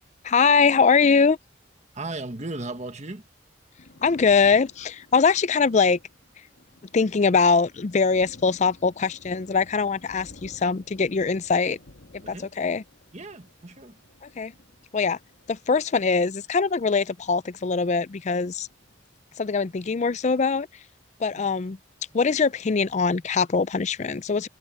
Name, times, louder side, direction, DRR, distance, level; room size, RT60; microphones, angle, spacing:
voice 1, 0.2-1.4 4.0-6.0 6.9-11.8 12.3-12.8 14.2-14.5 14.9-15.2 15.5-18.7 19.4-20.7 21.2-21.8 22.1-24.5, left 5 dB, 40° left, 0.4 m, -22 dB
voice 2, 1.9-3.2 12.2-12.5 13.1-14.0 21.3-21.5, right 2 dB, 35° right, 1.7 m, -36 dB
Thunder, 3.7-18.0 18.3-19.5, left 1 dB, 65° left, 1.6 m, -53 dB
head